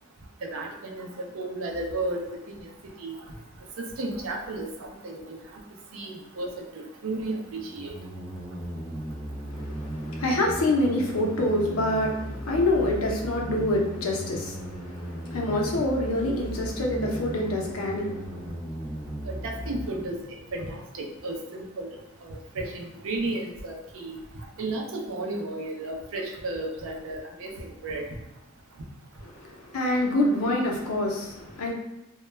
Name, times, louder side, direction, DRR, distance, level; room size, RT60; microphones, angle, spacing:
voice 1, 0.4-2.2 2.6-2.7 3.0-3.2 3.8-5.3 5.9-7.9 19.2-20.2 20.5-21.9 22.2-24.2 24.6-28.1, right 2 dB, 70° right, 1 dB, 0.5 m, -33 dB
sound 1, 1.7-1.8 7.3-19.9, equal, 5° right, 0.4 m, -36 dB
voice 2, 9.5-18.5 29.3-31.7, left 1 dB, 80° left, -1 dB, 0.6 m, -26 dB
2.2 x 2.1 x 3.1 m, 0.93 s
head